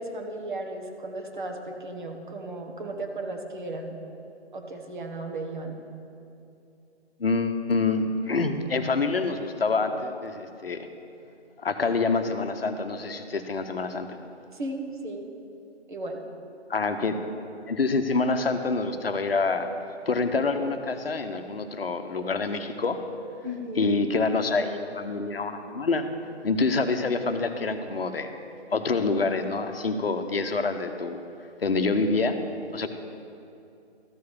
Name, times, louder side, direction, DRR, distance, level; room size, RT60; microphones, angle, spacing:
voice 1, 0.0-4.0 4.5-5.8 14.5-15.3 15.9-16.2 23.4-23.9, right 2 dB, 45° right, 2 dB, 1.5 m, -35 dB
voice 2, 7.2-10.9 11.6-14.1 16.7-17.2 17.7-19.7 20.1-23.0 23.8-26.1 26.4-28.3 28.7-31.2 31.6-32.4 32.7-32.9, left 3 dB, 60° left, 7 dB, 0.9 m, -26 dB
13.5 x 4.7 x 7.1 m, 2.6 s
figure-of-eight pair, 150°, 34 cm